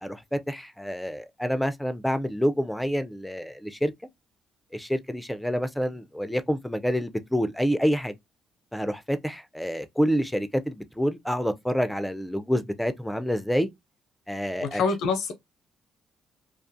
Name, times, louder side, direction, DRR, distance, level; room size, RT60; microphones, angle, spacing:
voice 1, 0.0-3.9 4.7-8.1 8.7-13.7 14.3-14.8, equal, 5° left, 0.4 m, -27 dB
voice 2, 14.6-15.3, left 5 dB, 85° left, 0.5 m, -25 dB
2.4 x 2.3 x 2.6 m
cardioid pair, 90°, 0 cm